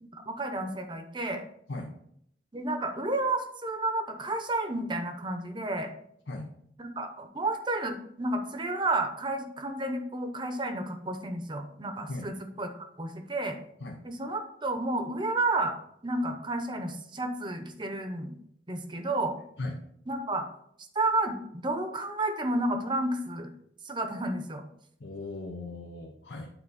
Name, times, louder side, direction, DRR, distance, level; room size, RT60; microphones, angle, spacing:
voice 1, 0.0-1.4 2.5-5.9 6.8-12.7 13.0-13.6 14.0-15.7 16.0-18.3 18.7-19.4 20.1-20.5 20.9-23.5 23.8-24.6, right 2 dB, 25° right, 6 dB, 0.8 m, -31 dB
voice 2, 25.0-26.5, left 2 dB, 75° left, 1 dB, 0.9 m, -37 dB
8.9 x 4.1 x 4.2 m, 0.69 s
head